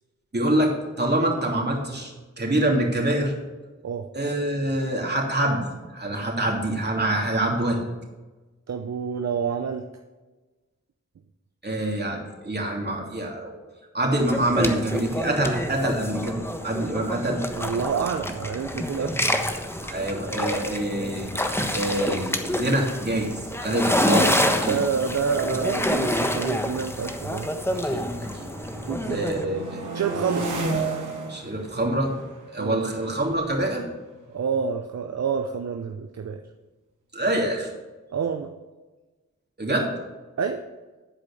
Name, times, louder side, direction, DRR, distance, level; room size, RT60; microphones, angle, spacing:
voice 1, 0.3-0.7 1.0-3.3 4.1-7.8 11.6-13.5 13.9-16.4 16.6-17.5 19.0-19.1 19.8-21.3 21.7-23.3 23.6-24.3 24.6-24.8 27.8-28.1 28.3-28.5 29.1-29.8 31.3-32.1 32.5-33.9 37.1-37.7 39.6-39.9, right 1 dB, 35° right, -1 dB, 3.0 m, -25 dB
voice 2, 8.7-9.8 17.6-19.2 24.7-27.5 28.8-29.2 29.9-30.5 32.6-32.8 34.3-36.4 38.1-38.5 40.4-40.6, right 6 dB, 60° right, 6 dB, 0.7 m, -28 dB
sound 1, 14.2-29.5, equal, 10° left, 1.2 m, -27 dB
Full Take - Car Approach and Pass By, 25.4-27.8 28.2-34.8, right 3 dB, 85° right, 1.8 m, -35 dB
11.5 x 5.0 x 7.0 m, 1.2 s
cardioid pair, 45°, 30 cm